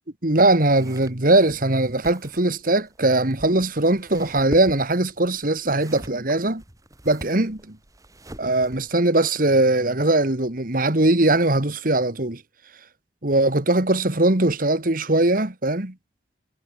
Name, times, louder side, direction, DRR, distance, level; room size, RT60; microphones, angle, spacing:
voice 1, 0.2-6.6 7.1-7.8 8.4-12.4 13.2-15.9, right 2 dB, 50° right, 1.9 m, -20 dB
sound 1, 0.7-9.0, right 1 dB, 20° right, 2.8 m, -43 dB
head